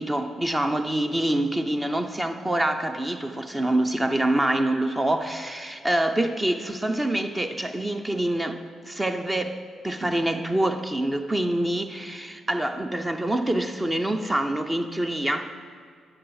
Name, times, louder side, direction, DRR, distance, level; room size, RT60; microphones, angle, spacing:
voice 1, 0.0-15.5, right 1 dB, 20° right, 0.6 m, -26 dB
9.6 x 7.4 x 4.8 m
supercardioid pair, 50°, 0 cm